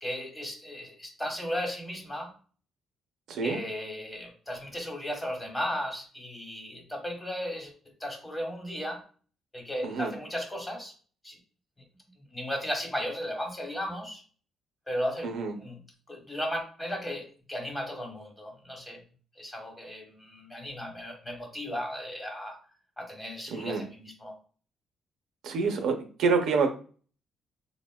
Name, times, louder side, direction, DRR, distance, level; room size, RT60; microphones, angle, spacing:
voice 1, 0.0-2.3 3.4-7.7 8.0-9.0 9.5-10.9 11.2-11.4 12.3-14.2 14.9-19.0 19.4-22.6 23.0-24.4, equal, 15° left, 2 dB, 1.0 m, -35 dB
voice 2, 15.2-15.5 23.5-23.8 25.4-26.7, right 4 dB, 80° right, 4 dB, 0.5 m, -27 dB
4.0 x 2.0 x 2.2 m, 0.40 s
cardioid pair, 90°, 0 cm